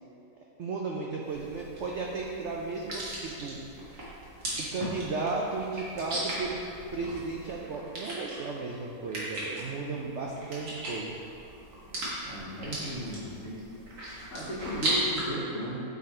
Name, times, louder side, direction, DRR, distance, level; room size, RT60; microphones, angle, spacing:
voice 1, 0.6-3.6 4.6-6.6 6.9-11.2, right 3 dB, 75° right, -2 dB, 0.6 m, -34 dB
sound 1, 1.3-15.2, right 1 dB, 55° right, 2.1 m, -37 dB
voice 2, 12.3-13.6 14.3-15.8, equal, 50° left, -4 dB, 1.2 m, -36 dB
9.5 x 3.9 x 4.3 m, 2.7 s
omnidirectional pair, 2.0 m